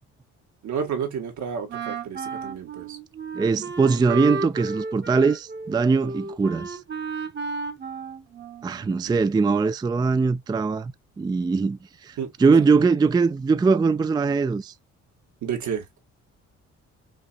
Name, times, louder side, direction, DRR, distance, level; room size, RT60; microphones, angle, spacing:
voice 1, 0.6-3.0 8.9-9.2 12.2-12.3 15.4-15.8, right 7 dB, 75° right, 1.7 m, -31 dB
Wind instrument woodwind instrument, 1.7-8.9, right 4 dB, 35° right, 1.0 m, -33 dB
voice 2, 3.3-6.8 8.6-10.9 11.2-14.7, right 4 dB, 15° right, 0.3 m, -21 dB
5.2 x 2.9 x 2.4 m
cardioid pair, 90°, 30 cm